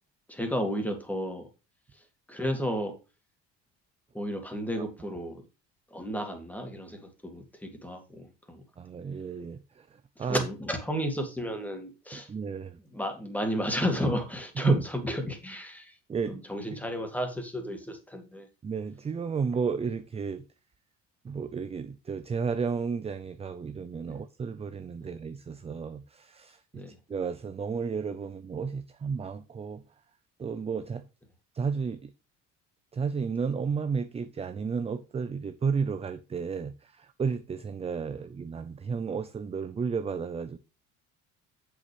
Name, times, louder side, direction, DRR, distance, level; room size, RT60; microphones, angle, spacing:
voice 1, 0.3-1.5 1.9-2.9 4.1-5.4 5.9-8.6 10.2-12.3 12.9-16.0 16.3-18.5 24.1-24.2 26.7-27.0, equal, 5° left, 2.2 m, -33 dB
voice 2, 8.8-10.5 12.1-12.8 14.6-14.7 16.1-16.4 18.6-20.4 21.2-29.8 30.4-31.0 31.5-32.1 32.9-40.6, right 5 dB, 20° right, 0.5 m, -32 dB
7.3 x 7.1 x 3.4 m
cardioid pair, 100°, 29 cm